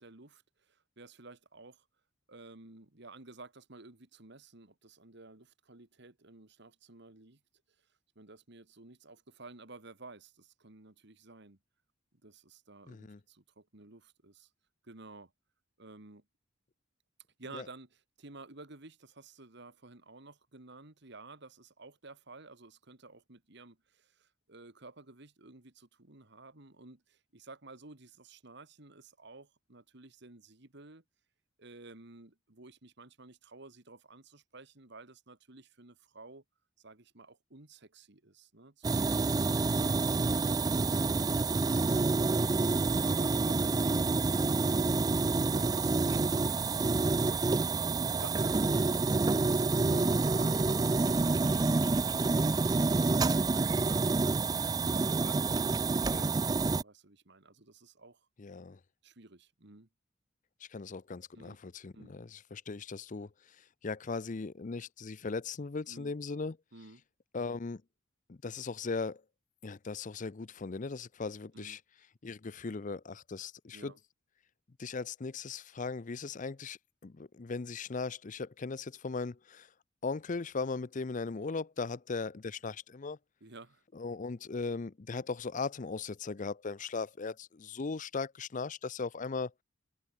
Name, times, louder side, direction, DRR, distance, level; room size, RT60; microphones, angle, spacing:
voice 1, 0.0-1.9 2.3-7.4 8.2-11.6 12.2-14.5 14.8-15.3 15.8-16.2 17.4-31.0 31.6-36.4 36.8-41.1 43.1-45.0 45.5-47.5 48.1-54.6 54.9-58.3 59.0-59.9 61.3-61.6 61.9-62.1 65.9-66.1 66.7-67.0 71.5-71.8 73.7-74.0 83.4-83.8, right 3 dB, 60° right, 2.0 m, -53 dB
voice 2, 12.9-13.2 17.5-17.6 39.5-39.8 55.8-56.3 58.4-58.8 60.7-63.3 63.6-66.6 67.3-67.8 68.3-69.2 69.6-71.8 72.2-73.9 74.8-79.7 80.0-83.2 83.9-89.5, left 4 dB, 40° left, 0.5 m, -38 dB
sound 1, 38.8-56.8, right 3 dB, 20° right, 0.4 m, -28 dB
head